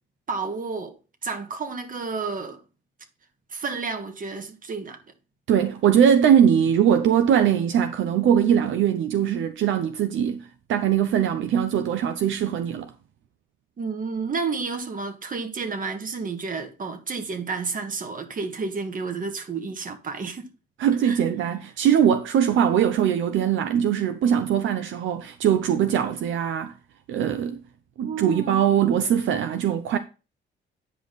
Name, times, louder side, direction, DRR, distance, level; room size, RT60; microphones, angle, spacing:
voice 1, 0.3-2.6 3.5-5.0 13.8-20.5 21.0-21.2 28.0-28.8, right 4 dB, 45° right, 1.7 m, -31 dB
voice 2, 5.5-12.9 20.8-26.7 27.1-27.6 28.0-30.0, right 9 dB, 75° right, 0.7 m, -21 dB
9.8 x 5.2 x 4.0 m
cardioid pair, 90°, 20 cm